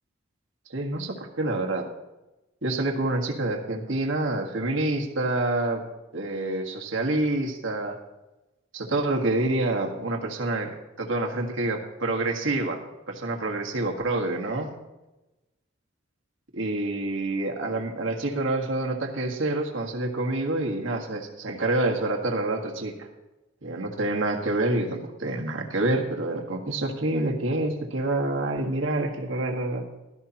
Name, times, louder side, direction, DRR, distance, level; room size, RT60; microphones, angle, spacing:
voice 1, 0.7-1.9 2.6-5.8 6.1-8.0 8.7-10.7 11.0-14.7 16.5-23.1 23.6-29.9, right 2 dB, 70° right, 2 dB, 1.6 m, -27 dB
16.0 x 12.5 x 2.9 m, 1.0 s
head